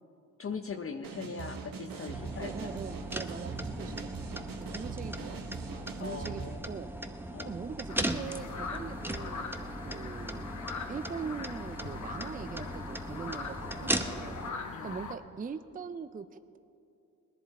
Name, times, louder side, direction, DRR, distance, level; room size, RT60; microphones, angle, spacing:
voice 1, 0.4-2.8 3.5-4.0 6.0-6.9 7.3-7.6 14.7-15.0, left 5 dB, 40° left, 5 dB, 0.7 m, -41 dB
sound 1, 1.0-6.6, right 5 dB, 80° right, 1.1 m, -41 dB
sound 2, 2.1-14.5, right 1 dB, 5° right, 0.8 m, -38 dB
voice 2, 2.4-4.1 4.6-5.4 6.0-6.9 7.4-10.5 10.9-14.4 14.8-16.6, right 5 dB, 25° right, 12 dB, 0.5 m, -42 dB
sound 3, 7.9-15.1, left 4 dB, 55° left, 1.1 m, -41 dB
19.5 x 10.5 x 4.2 m, 2.6 s
cardioid pair, 60°, 34 cm